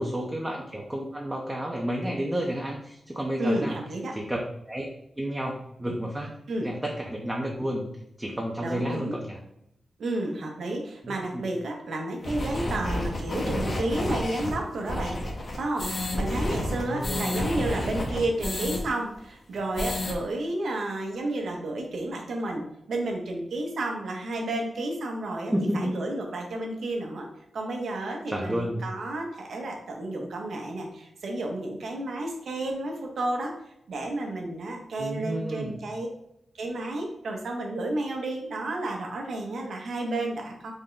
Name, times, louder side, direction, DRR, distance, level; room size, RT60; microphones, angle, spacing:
voice 1, 0.0-3.8 4.1-4.4 4.7-4.9 5.2-6.3 6.6-7.9 8.2-9.4 11.0-11.4 16.8-17.9 25.5-25.9 28.3-28.8 35.0-35.8, equal, 15° right, -1 dB, 0.5 m, -31 dB
voice 2, 3.4-4.1 6.5-6.7 8.6-9.1 10.0-15.2 15.5-27.3 27.5-33.5 33.9-36.1 36.6-40.7, right 2 dB, 75° right, 2 dB, 0.7 m, -31 dB
sound 1, 12.2-18.8 19.1-19.2 19.5-20.1, left 1 dB, 45° left, 0.7 m, -30 dB
3.6 x 2.1 x 3.7 m, 0.79 s
cardioid pair, 80°, 0 cm